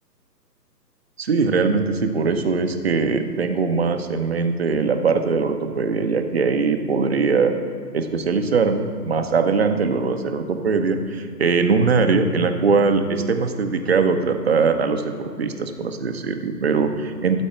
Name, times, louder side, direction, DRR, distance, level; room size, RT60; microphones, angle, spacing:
voice 1, 1.2-7.5 7.9-17.4, right 4 dB, 40° right, 7 dB, 0.8 m, -21 dB
13.5 x 4.5 x 8.5 m, 2.4 s
figure-of-eight pair, 140°, 50 cm